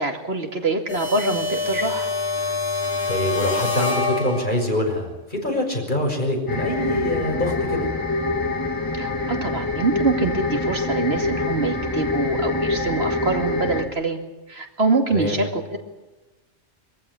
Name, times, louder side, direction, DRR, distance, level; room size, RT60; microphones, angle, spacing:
voice 1, 0.0-2.1 8.9-14.2 14.5-15.8, right 3 dB, 65° right, 4 dB, 2.5 m, -24 dB
sound 1, 0.9-4.8, left 3 dB, 80° left, 3.9 m, -26 dB
voice 2, 3.1-7.9 15.1-15.4, left 1 dB, 45° left, 1 dB, 6.1 m, -25 dB
sound 2, 6.5-13.8, left 2 dB, 20° left, 2.2 m, -25 dB
24.0 x 15.0 x 9.8 m, 1.1 s
omnidirectional pair, 1.1 m